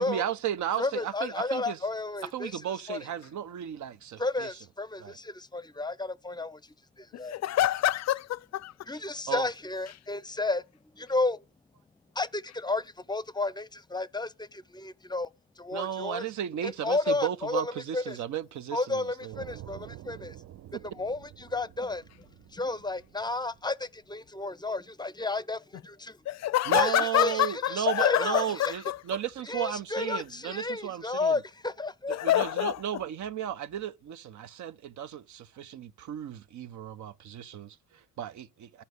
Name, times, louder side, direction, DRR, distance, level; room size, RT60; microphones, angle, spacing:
voice 1, 0.0-1.8 2.2-4.5 5.0-5.2 9.3-9.5 15.7-19.4 26.7-31.4 32.2-38.8, right 10 dB, 70° right, 0.9 m, -34 dB
voice 2, 0.8-2.6 2.9-3.0 4.2-6.6 7.0-7.4 8.9-10.6 10.9-11.4 12.2-15.3 15.6-16.3 16.6-18.2 18.7-20.4 20.9-22.0 22.5-26.2 26.7-28.7 29.5-32.2, left 3 dB, 15° left, 0.6 m, -32 dB
voice 3, 7.1-8.7 26.3-29.0 32.1-33.0, left 13 dB, 60° left, 0.5 m, -27 dB
sound 1, 19.3-24.1, right 13 dB, 55° right, 0.5 m, -48 dB
11.5 x 5.5 x 8.2 m
cardioid pair, 90°, 30 cm